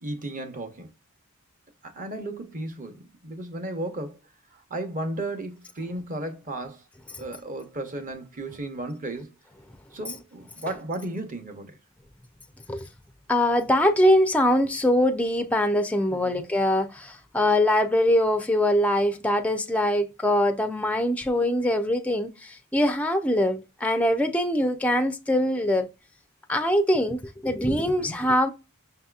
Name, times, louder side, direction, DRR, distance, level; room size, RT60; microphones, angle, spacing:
voice 1, 0.0-0.9 1.8-4.2 4.7-6.8 7.2-9.3 9.9-11.8 16.1-16.4 28.0-28.1, right 1 dB, 40° right, 0.9 m, -34 dB
voice 2, 13.3-25.9 26.5-28.5, left 1 dB, 5° left, 0.4 m, -23 dB
5.7 x 2.8 x 2.3 m
head